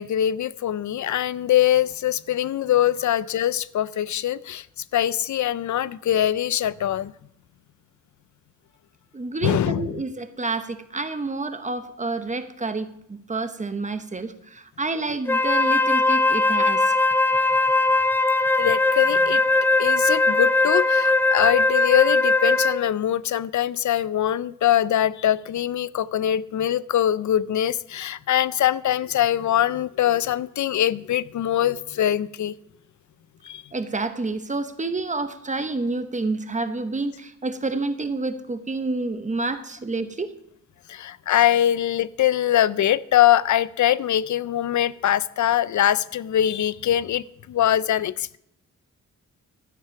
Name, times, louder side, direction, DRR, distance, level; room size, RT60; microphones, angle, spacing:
voice 1, 0.0-4.7 4.9-7.1 9.4-10.0 18.6-19.4 19.8-32.5 33.4-33.6 40.9-48.4, left 11 dB, 65° left, 19 dB, 0.5 m, -23 dB
voice 2, 9.1-16.9 33.7-40.3, right 3 dB, 25° right, 9 dB, 0.9 m, -29 dB
Wind instrument woodwind instrument, 15.3-22.9, left 2 dB, 5° left, 0.4 m, -20 dB
12.5 x 7.4 x 5.8 m, 0.77 s
wide cardioid pair, 130°, 31 cm